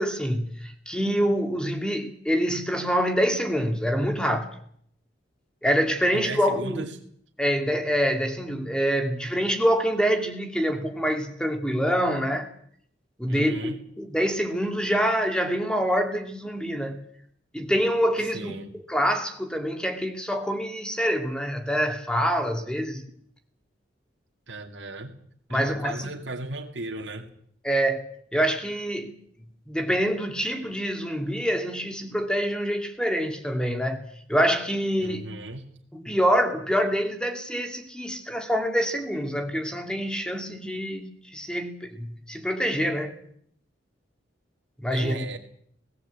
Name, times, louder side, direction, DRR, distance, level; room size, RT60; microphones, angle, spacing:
voice 1, 0.0-4.5 5.6-6.9 7.4-12.5 13.2-17.0 17.5-18.5 18.9-23.0 25.5-26.1 27.6-29.1 29.7-35.2 35.9-43.2 44.8-45.2, equal, 5° left, 2.4 m, -26 dB
voice 2, 6.1-7.0 13.3-13.8 18.3-18.7 24.5-25.1 25.5-27.3 35.0-35.6 44.9-45.4, right 2 dB, 80° right, 2.4 m, -36 dB
18.0 x 18.0 x 8.3 m
head